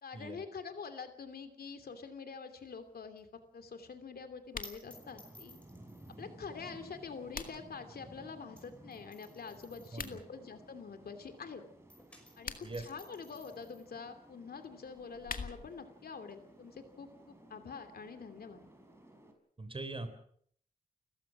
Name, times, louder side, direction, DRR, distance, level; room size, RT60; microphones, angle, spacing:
voice 1, 0.0-5.6 6.2-11.6 12.4-18.7, left 5 dB, 85° left, 8 dB, 2.9 m, -46 dB
sound 1, 2.6-11.5 11.7-19.0, left 1 dB, 10° left, 5.7 m, -60 dB
sound 2, 4.4-4.8 6.8-7.8 9.8-10.2 12.2-12.9 14.9-15.8, left 5 dB, 65° left, 2.1 m, -44 dB
sound 3, 4.9-19.3, right 1 dB, 15° right, 5.3 m, -57 dB
voice 2, 19.6-20.1, right 2 dB, 35° right, 10 dB, 3.8 m, -41 dB
30.0 x 15.0 x 6.1 m, 0.63 s
wide cardioid pair, 100°, 15 cm